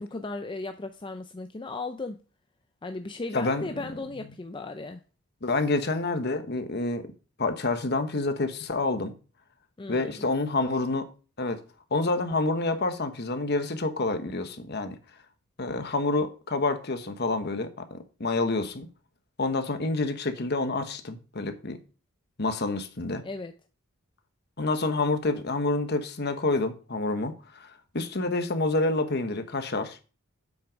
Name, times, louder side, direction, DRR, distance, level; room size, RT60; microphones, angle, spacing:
voice 1, 0.0-2.2 2.8-5.0 9.8-10.3 23.2-23.5, left 3 dB, 20° left, 0.4 m, -36 dB
voice 2, 3.3-3.6 5.4-7.1 7.4-9.1 9.9-11.1 11.4-11.6 11.9-15.0 15.6-18.9 19.4-21.8 22.4-23.2 24.6-30.0, left 2 dB, 50° left, 1.1 m, -28 dB
7.9 x 6.0 x 5.1 m
head